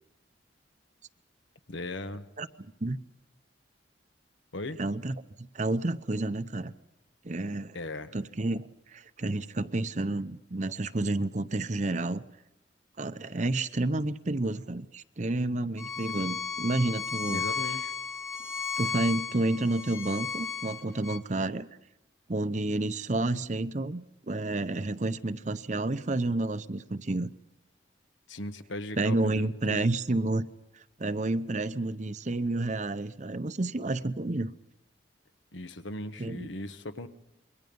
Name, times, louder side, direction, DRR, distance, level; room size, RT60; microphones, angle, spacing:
voice 1, 1.7-2.3 4.5-4.8 7.7-8.1 17.3-17.9 28.3-29.8 35.5-37.1, left 1 dB, 85° left, 9 dB, 1.3 m, -38 dB
voice 2, 2.4-3.0 4.8-6.7 7.2-7.8 8.1-12.2 13.0-17.4 18.8-21.7 22.3-27.3 29.0-30.5 30.7-34.5 36.2-36.5, right 2 dB, 40° right, 13 dB, 0.8 m, -30 dB
Bowed string instrument, 15.8-21.2, left 5 dB, 15° left, 1.3 m, -34 dB
27.0 x 23.0 x 5.4 m, 0.92 s
head